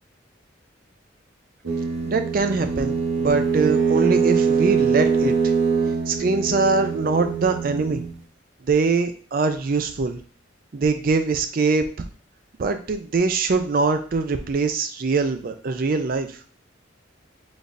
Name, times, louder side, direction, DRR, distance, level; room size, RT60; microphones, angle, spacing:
sound 1, 1.6-8.2, right 5 dB, 65° right, 1.0 m, -23 dB
voice 1, 2.0-5.3 6.1-8.0 8.6-10.2 10.7-11.9 12.6-16.3, right 4 dB, 45° right, 8 dB, 0.4 m, -23 dB
4.0 x 3.4 x 2.5 m, 0.41 s
head